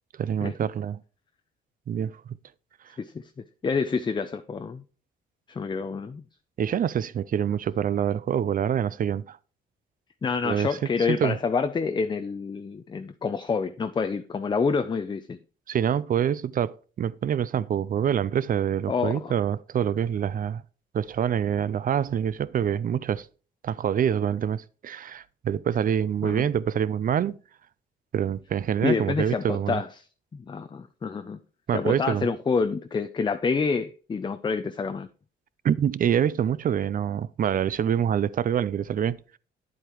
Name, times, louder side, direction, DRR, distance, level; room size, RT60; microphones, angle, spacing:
voice 1, 0.2-1.0 1.9-2.1 6.6-9.4 10.4-10.7 11.1-11.4 15.7-20.6 20.9-23.3 23.6-27.4 28.1-29.8 31.7-32.3 35.6-39.4, right 9 dB, 45° right, 0.4 m, -26 dB
voice 2, 3.0-4.8 5.5-6.2 10.2-15.4 18.9-19.3 26.2-26.5 28.8-30.0 30.3-31.4 31.7-35.1, left 5 dB, 25° left, 0.5 m, -28 dB
9.2 x 8.1 x 3.0 m
cardioid pair, 90°, 20 cm